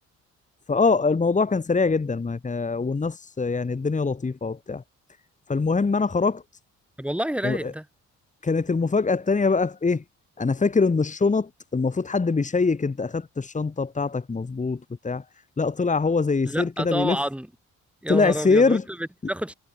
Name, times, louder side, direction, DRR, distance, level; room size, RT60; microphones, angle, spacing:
voice 1, 0.7-4.8 5.5-6.4 7.4-7.7 8.4-10.0 10.4-15.2 15.6-17.2 18.1-18.8, left 4 dB, 25° left, 2.3 m, -23 dB
voice 2, 7.0-7.8 16.4-17.5 18.0-19.5, right 1 dB, 5° right, 5.6 m, -29 dB
cardioid pair, 90°, 30 cm